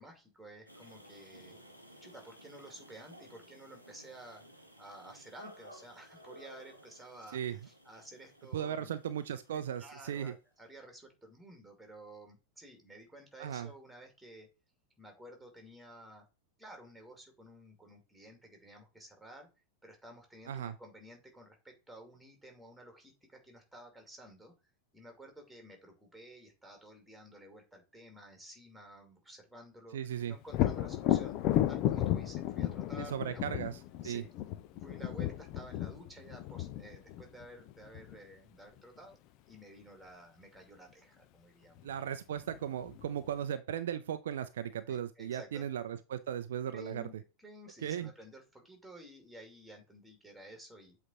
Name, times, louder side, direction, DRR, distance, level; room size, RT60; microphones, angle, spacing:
voice 1, 0.0-1.6 2.0-4.4 4.8-9.0 9.5-14.5 15.0-16.3 16.6-19.5 19.8-24.5 24.9-30.0 30.3-31.4 31.7-33.6 34.0-34.3 34.7-39.2 39.5-41.8 44.9-45.7 46.7-51.0, right 1 dB, ahead, 2.4 m, -53 dB
sound 1, 0.7-10.4, equal, 90° left, 1.4 m, -56 dB
voice 2, 8.5-10.3 13.4-13.7 20.5-20.8 29.9-30.4 33.0-33.8 34.0-34.2 41.8-47.1 47.8-48.1, right 9 dB, 60° right, 0.5 m, -37 dB
Thunder, 30.5-38.2 41.8-41.9 42.4-43.3, left 12 dB, 40° left, 0.6 m, -33 dB
7.8 x 3.4 x 4.2 m
figure-of-eight pair, 90°, 0 cm